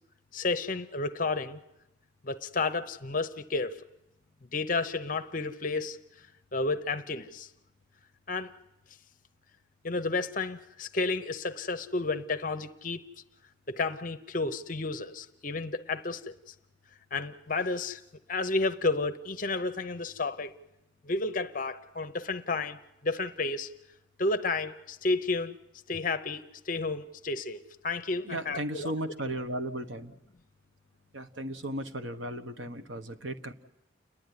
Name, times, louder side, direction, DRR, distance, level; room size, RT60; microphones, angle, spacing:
voice 1, 0.3-1.6 2.2-3.8 4.5-6.0 6.5-7.5 8.3-8.5 9.8-13.0 13.7-16.5 17.1-18.0 18.3-20.5 21.0-23.7 24.2-25.5 25.9-28.9, left 3 dB, 40° left, 0.7 m, -31 dB
voice 2, 28.2-30.1 31.1-33.5, right 1 dB, 75° right, 1.3 m, -35 dB
29.5 x 11.0 x 9.9 m
head